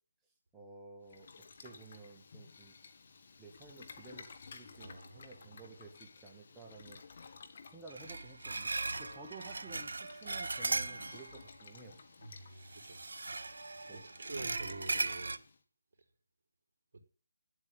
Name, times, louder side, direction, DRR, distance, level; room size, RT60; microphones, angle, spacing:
voice 1, 0.5-2.8 3.4-7.0 7.7-12.0 13.9-14.0, right 3 dB, 10° right, 1.7 m, -53 dB
Boiling, 1.0-15.6, left 5 dB, 50° left, 1.7 m, -55 dB
voice 2, 4.7-5.8 8.9-9.2 12.2-13.0 13.9-15.4 16.9-17.0, right 2 dB, 50° right, 3.6 m, -48 dB
sound 1, 7.9-11.4 12.6-15.4, right 3 dB, 70° right, 0.8 m, -38 dB
9.9 x 8.1 x 8.9 m
figure-of-eight pair, 155°, 0 cm